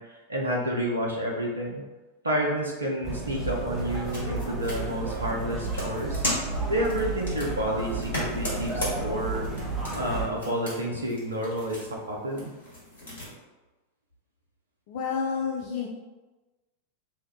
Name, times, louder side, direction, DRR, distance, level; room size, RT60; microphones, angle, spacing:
voice 1, 0.0-1.8 2.2-6.2 6.7-9.5 9.9-12.5, equal, 75° right, -1 dB, 0.6 m, -30 dB
sound 1, 3.0-10.3, right 3 dB, 20° right, 0.7 m, -32 dB
sound 2, 3.7-13.3, left 1 dB, 65° left, 1.3 m, -37 dB
voice 2, 14.9-15.9, left 6 dB, 50° left, 0 dB, 0.3 m, -29 dB
2.6 x 2.2 x 3.5 m, 1.2 s
figure-of-eight pair, 90°, 0 cm